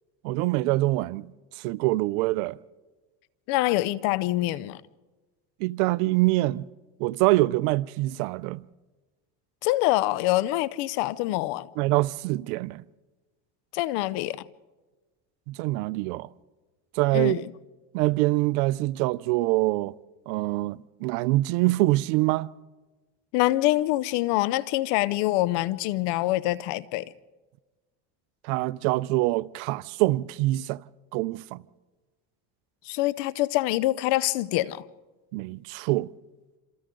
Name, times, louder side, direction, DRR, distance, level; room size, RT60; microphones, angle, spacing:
voice 1, 0.2-1.3 1.6-2.6 5.6-6.7 7.0-8.6 11.8-12.8 15.5-16.3 16.9-17.4 17.9-19.9 20.3-22.5 28.4-30.8 31.1-31.6 35.3-36.1, right 19 dB, 85° right, 0.6 m, -25 dB
voice 2, 3.5-4.8 9.6-11.7 13.7-14.4 17.1-17.5 23.3-27.1 32.9-34.8, left 17 dB, 75° left, 0.8 m, -25 dB
27.5 x 27.0 x 3.8 m
supercardioid pair, 105°, 42 cm